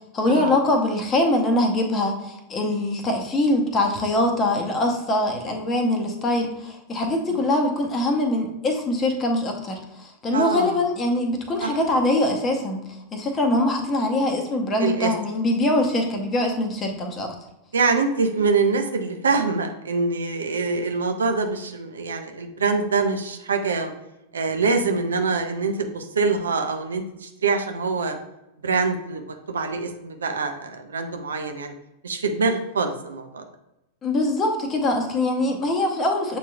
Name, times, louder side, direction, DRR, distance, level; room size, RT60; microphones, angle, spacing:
voice 1, 0.1-12.8 13.1-17.3 34.0-36.4, left 1 dB, 25° left, 3 dB, 0.8 m, -23 dB
voice 2, 10.3-10.8 11.6-11.7 14.8-15.1 17.7-23.9 24.3-28.2 28.6-31.7 32.0-33.4, right 4 dB, 70° right, 5 dB, 0.5 m, -24 dB
7.0 x 2.9 x 2.3 m, 0.90 s
figure-of-eight pair, 90°, 0 cm